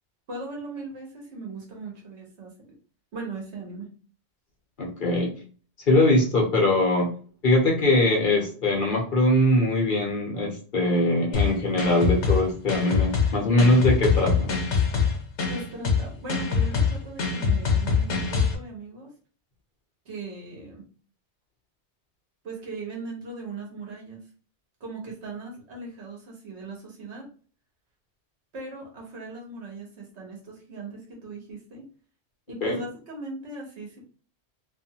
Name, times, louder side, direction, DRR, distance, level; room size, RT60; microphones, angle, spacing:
voice 1, 0.3-2.5 3.1-3.9 15.5-19.1 20.0-20.9 22.4-24.2 24.8-27.3 28.5-31.8 32.5-34.0, right 3 dB, 70° right, -1 dB, 1.3 m, -38 dB
voice 2, 4.8-5.3 5.9-7.1 7.4-14.5 32.6-32.8, left 1 dB, 50° left, -1 dB, 0.9 m, -22 dB
sound 1, 11.3-18.5, left 5 dB, 75° left, 1.0 m, -24 dB
2.6 x 2.6 x 2.7 m, 0.40 s
omnidirectional pair, 1.2 m